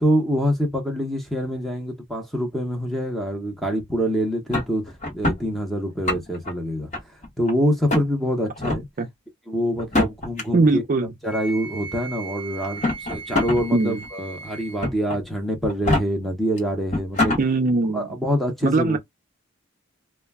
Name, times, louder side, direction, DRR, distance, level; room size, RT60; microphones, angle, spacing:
voice 1, 0.0-4.8 5.1-6.9 7.4-8.9 9.5-10.8 11.2-17.4 17.9-19.0, equal, ahead, 0.7 m, -25 dB
sound 1, 4.5-5.4 5.9-6.5 6.9-7.5 7.9-8.1 8.6-8.8 9.8-10.4 11.5-11.6 12.6-13.6 14.0-14.1 14.8-15.2 15.7-16.0 16.6-16.7 16.9-17.4, left 2 dB, 35° left, 1.0 m, -24 dB
voice 2, 10.5-11.1 13.7-14.0 17.4-18.2 18.6-19.0, right 3 dB, 40° right, 0.4 m, -21 dB
Wind instrument woodwind instrument, 11.3-14.9, right 4 dB, 60° left, 1.1 m, -37 dB
2.2 x 2.1 x 3.4 m
head